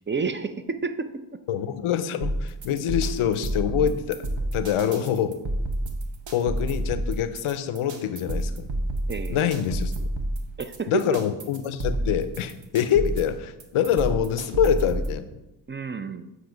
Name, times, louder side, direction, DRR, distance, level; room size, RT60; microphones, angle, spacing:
voice 1, 0.1-1.1 9.1-9.4 10.6-10.9 15.7-16.3, right 4 dB, 25° right, 10 dB, 0.4 m, -30 dB
voice 2, 1.5-4.2 4.5-5.4 6.3-8.7 9.3-9.9 10.9-15.3, left 9 dB, 85° left, 12 dB, 0.6 m, -25 dB
sound 1, 2.2-15.2, right 1 dB, 65° right, 1.1 m, -30 dB
7.8 x 2.8 x 5.0 m, 0.96 s
cardioid pair, 45°, 49 cm